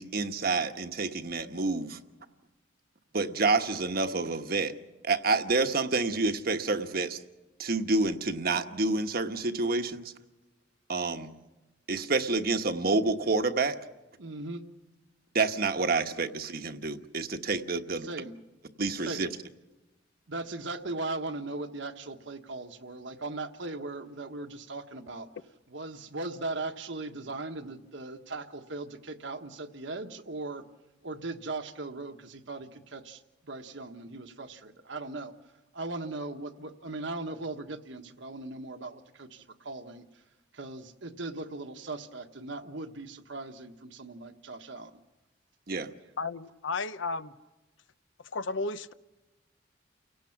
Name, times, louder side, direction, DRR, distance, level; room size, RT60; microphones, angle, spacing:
voice 1, 0.0-2.0 3.1-4.7 5.0-7.2 7.6-10.1 10.9-11.3 11.9-13.8 15.3-18.1 18.8-19.3 45.7-45.9, right 3 dB, 50° right, 1.2 m, -28 dB
voice 2, 14.2-14.6 17.9-18.3 19.0-19.3 20.3-25.3 25.7-30.6 31.0-35.3 35.7-40.1 40.5-45.0, right 2 dB, 70° right, 1.4 m, -38 dB
voice 3, 46.2-47.3 48.3-48.9, left 3 dB, 75° left, 0.8 m, -33 dB
30.0 x 17.5 x 5.9 m
head